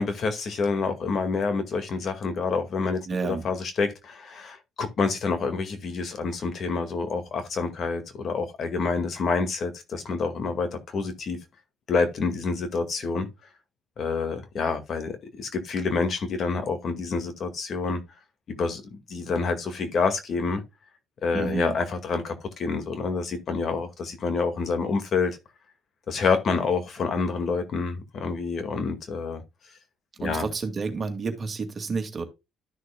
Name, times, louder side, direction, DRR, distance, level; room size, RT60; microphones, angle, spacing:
voice 1, 0.0-11.4 11.9-13.3 14.0-18.0 18.5-20.6 21.2-25.4 26.1-29.4 30.2-30.5, left 4 dB, 50° left, 1.9 m, -28 dB
voice 2, 3.1-3.4 21.3-21.8 30.2-32.2, right 4 dB, 35° right, 2.2 m, -30 dB
12.5 x 6.4 x 2.3 m
cardioid pair, 125°, 0 cm